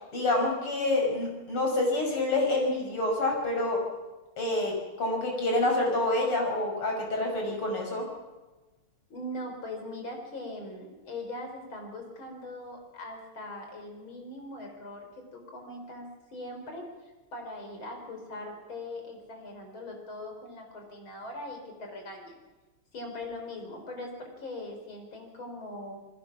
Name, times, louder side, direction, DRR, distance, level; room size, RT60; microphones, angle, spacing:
voice 1, 0.0-3.8 4.4-8.0, left 2 dB, 85° left, 1 dB, 6.5 m, -27 dB
voice 2, 9.1-22.4 22.9-26.0, left 1 dB, 65° left, 3 dB, 4.9 m, -41 dB
28.5 x 20.5 x 6.0 m, 1.1 s
omnidirectional pair, 2.4 m